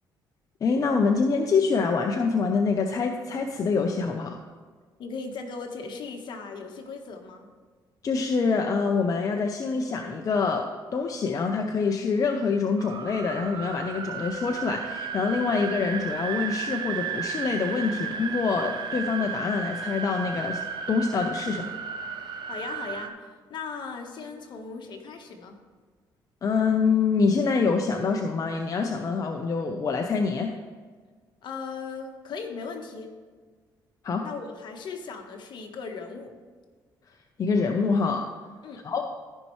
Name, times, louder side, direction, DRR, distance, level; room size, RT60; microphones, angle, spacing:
voice 1, 0.6-4.4 8.0-20.6 20.9-21.7 26.4-30.6 34.0-34.3 37.4-38.3 38.8-39.1, left 4 dB, 45° left, 4 dB, 0.6 m, -25 dB
voice 2, 5.0-7.5 22.5-25.6 31.4-33.1 34.2-36.3 38.6-38.9, left 5 dB, 60° left, 4 dB, 1.3 m, -38 dB
sound 1, 12.8-23.1, right 6 dB, 60° right, 0.7 m, -34 dB
14.0 x 5.4 x 3.2 m, 1.5 s
cardioid pair, 95°, 9 cm